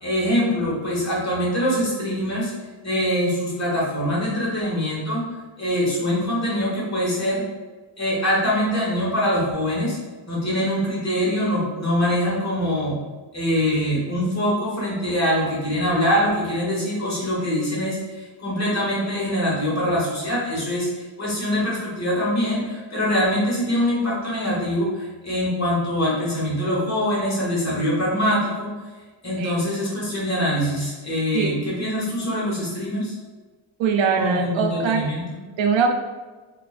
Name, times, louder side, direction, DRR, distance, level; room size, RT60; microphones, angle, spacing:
voice 1, 0.0-2.5 2.8-5.2 5.6-7.4 8.0-10.0 10.3-13.0 13.3-28.7 29.2-33.1 34.1-35.4, equal, 35° left, -5 dB, 1.4 m, -23 dB
voice 2, 31.3-31.7 33.8-35.1 35.6-35.9, right 5 dB, 70° right, 5 dB, 0.5 m, -22 dB
4.6 x 2.7 x 2.5 m, 1.3 s
wide cardioid pair, 120°, 47 cm